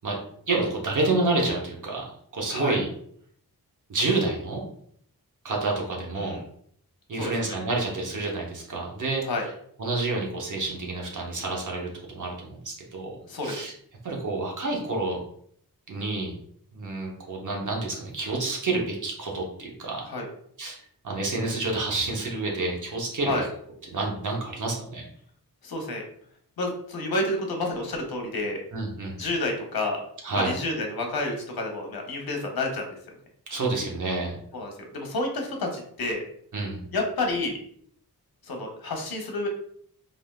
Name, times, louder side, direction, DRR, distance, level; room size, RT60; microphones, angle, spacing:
voice 1, 0.5-2.9 3.9-4.6 5.4-6.4 7.1-9.2 9.8-13.7 14.0-15.2 15.9-16.4 16.7-20.0 20.6-20.8 21.0-23.4 23.9-25.1 28.7-29.2 30.2-30.5 33.5-34.4 36.5-36.9, right 3 dB, 55° right, -1 dB, 0.8 m, -29 dB
voice 2, 2.5-2.8 6.1-6.4 7.1-7.5 9.2-9.5 13.3-13.6 20.0-20.3 23.2-23.5 25.6-26.0 26.6-28.6 29.2-30.0 30.3-32.9 34.5-36.2 36.9-37.6 38.4-39.5, left 2 dB, 70° left, 2 dB, 0.8 m, -29 dB
3.3 x 2.5 x 2.3 m, 0.64 s
wide cardioid pair, 120°, 37 cm